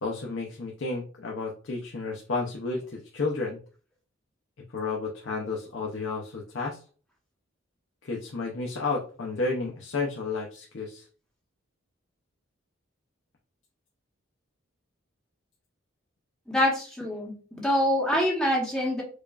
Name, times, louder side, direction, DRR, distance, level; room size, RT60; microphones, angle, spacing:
voice 1, 0.0-3.6 4.7-6.8 8.0-11.1, left 3 dB, 65° left, -1 dB, 0.6 m, -32 dB
voice 2, 16.5-19.0, equal, 5° left, -3 dB, 1.0 m, -25 dB
4.9 x 2.3 x 2.4 m, 0.39 s
head